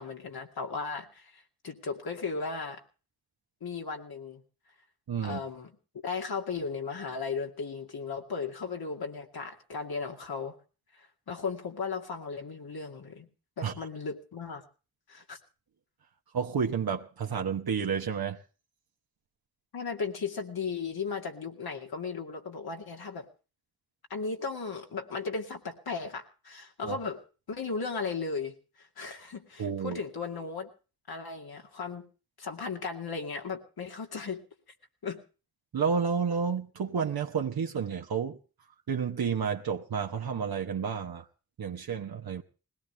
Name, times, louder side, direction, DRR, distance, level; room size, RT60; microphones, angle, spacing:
voice 1, 0.0-2.8 3.6-4.4 5.2-5.7 6.0-10.5 10.9-13.3 13.6-14.6 15.1-15.4 19.7-23.3 24.1-27.2 27.5-30.7 31.1-32.0 32.4-34.4 35.0-35.2, left 5 dB, 90° left, 2.5 m, -36 dB
voice 2, 5.1-5.4 13.6-13.7 16.3-18.4 26.8-27.0 29.6-30.0 35.7-38.4 38.9-41.3 41.6-42.4, right 6 dB, 80° right, 1.1 m, -30 dB
20.0 x 17.5 x 3.2 m
cardioid pair, 50°, 36 cm